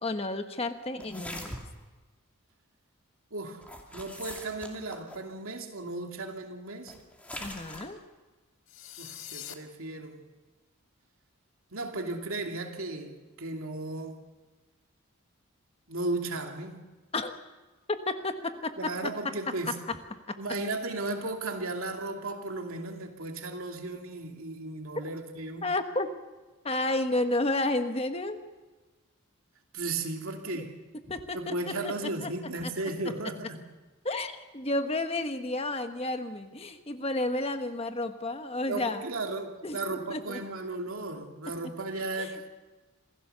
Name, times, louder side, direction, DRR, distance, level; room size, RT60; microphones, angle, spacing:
voice 1, 0.0-1.6 7.4-8.0 17.1-17.3 17.9-19.3 19.7-20.0 20.3-20.4 25.6-26.1 26.6-28.4 30.5-30.6 31.1-31.5 31.8-31.9 32.2-32.3 34.0-39.0 39.6-39.8 40.1-40.4 42.2-42.5, left 2 dB, 25° left, 8 dB, 1.2 m, -31 dB
sound 1, 1.0-1.8 3.6-5.3 6.9-7.9, left 1 dB, 5° left, 2.5 m, -42 dB
voice 2, 3.3-3.6 3.9-6.9 9.0-10.2 11.7-14.2 15.9-16.8 18.8-19.8 20.4-25.7 29.7-30.7 31.3-33.6 38.7-42.5, right 2 dB, 70° right, 3 dB, 2.7 m, -35 dB
sound 2, 8.7-9.5, left 11 dB, 65° left, 1.9 m, -43 dB
27.0 x 16.0 x 6.9 m, 1.2 s
head